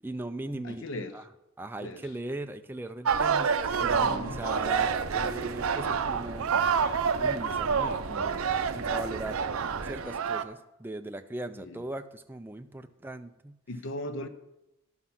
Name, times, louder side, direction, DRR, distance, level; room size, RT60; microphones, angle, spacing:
voice 1, 0.0-1.3 1.6-6.5 7.2-8.4 8.7-9.4 9.8-13.6, right 2 dB, 10° right, 0.3 m, -39 dB
voice 2, 0.6-1.1 1.8-2.0 4.0-4.4 11.5-11.8 13.7-14.3, left 1 dB, 60° left, 0.7 m, -37 dB
sound 1, 3.1-10.4, right 6 dB, 80° right, 0.5 m, -28 dB
sound 2, 3.6-10.0, right 2 dB, 60° right, 0.8 m, -41 dB
11.0 x 5.8 x 5.8 m
head